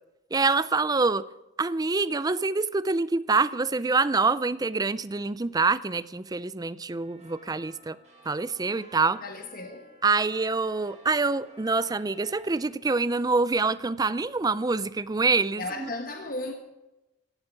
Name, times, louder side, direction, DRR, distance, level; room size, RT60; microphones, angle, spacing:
voice 1, 0.3-1.2 1.6-8.0 8.3-9.2 10.0-15.9, right 3 dB, 20° right, 0.5 m, -26 dB
sound 1, 7.0-12.6, right 1 dB, 40° right, 3.3 m, -54 dB
voice 2, 9.2-9.9 15.6-16.5, left 2 dB, 50° left, 1.4 m, -35 dB
16.5 x 7.6 x 9.2 m
head